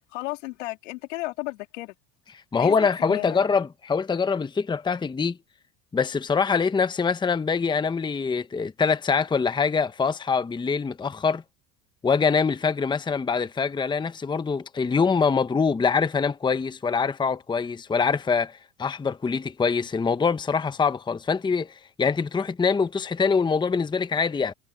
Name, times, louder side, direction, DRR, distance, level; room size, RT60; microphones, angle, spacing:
voice 1, 0.1-1.9 2.5-3.4, left 20 dB, 85° left, 3.4 m, -34 dB
voice 2, 2.5-5.4 5.9-11.4 12.0-24.5, left 5 dB, 10° left, 0.9 m, -24 dB
supercardioid pair, 115°, 36 cm